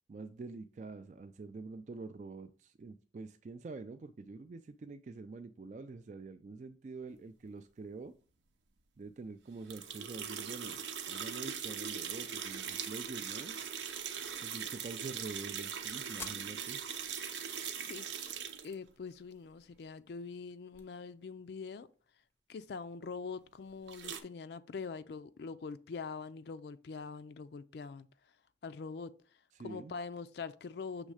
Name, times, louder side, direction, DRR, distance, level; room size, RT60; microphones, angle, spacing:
voice 1, 0.1-8.1 9.0-14.1 14.4-16.8 29.5-30.0, right 3 dB, 40° right, 0.3 m, -46 dB
sound 1, 9.7-18.7 23.9-24.2, right 7 dB, 90° right, 0.7 m, -40 dB
sound 2, 16.2-22.4, left 3 dB, 15° left, 0.6 m, -58 dB
voice 2, 17.8-18.1 18.6-21.9 22.5-28.1 28.6-29.1 29.6-31.1, left 5 dB, 70° left, 0.4 m, -43 dB
6.4 x 3.1 x 4.9 m
head